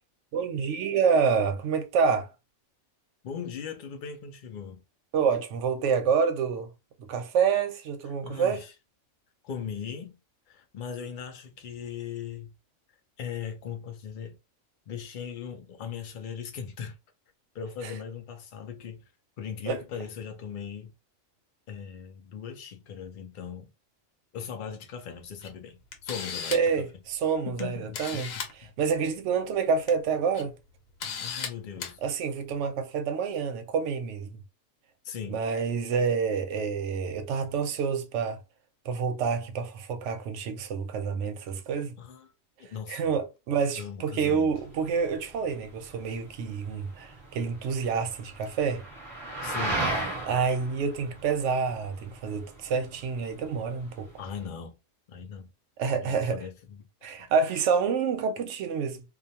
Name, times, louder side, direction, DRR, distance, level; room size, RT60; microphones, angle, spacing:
voice 1, 0.3-2.3 5.1-6.7 7.0-8.6 19.7-19.8 26.5-28.3 28.8-30.5 32.0-34.4 35.3-38.4 38.9-41.9 42.9-48.8 50.2-54.1 55.8-56.4 57.0-59.0, right 6 dB, 70° right, 0.8 m, -28 dB
voice 2, 3.2-4.8 8.2-8.7 9.4-10.2 10.5-12.5 13.2-14.4 14.9-17.0 17.5-19.0 19.4-20.9 21.7-23.7 24.3-26.9 27.5-28.7 31.0-32.0 35.0-35.5 41.7-42.3 42.6-43.0 43.8-44.5 49.4-49.9 54.2-54.8 55.1-55.5 56.0-56.9 57.2-57.3, left 7 dB, 60° left, 0.5 m, -39 dB
Camera, 25.4-25.5 25.9-26.7 27.6-27.7 27.9-28.5 29.7-29.9 30.3-30.4 31.0-31.5 31.8-31.9, left 6 dB, 85° left, 1.1 m, -35 dB
sound 1, 44.5-54.5, right 2 dB, 15° right, 1.0 m, -37 dB
2.4 x 2.2 x 2.7 m
omnidirectional pair, 1.4 m